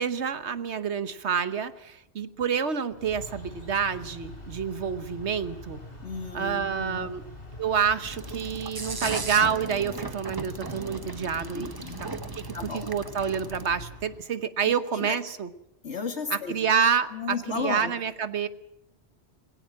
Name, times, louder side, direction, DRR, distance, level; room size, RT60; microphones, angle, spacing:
voice 1, 0.0-5.8 6.3-7.2 7.6-11.7 12.3-12.4 12.7-15.5 16.3-17.1 17.5-18.5, right 7 dB, 80° right, 12 dB, 1.4 m, -28 dB
sound 1, 2.9-14.3, left 1 dB, 55° left, 4.2 m, -43 dB
voice 2, 6.0-7.1 11.5-12.1 12.5-12.8 14.6-15.2 15.8-16.6 17.1-17.9, left 5 dB, 85° left, 5 dB, 2.6 m, -34 dB
sound 2, 8.0-13.7, right 3 dB, 20° right, 0.8 m, -37 dB
21.0 x 17.5 x 7.6 m, 0.87 s
omnidirectional pair, 1.1 m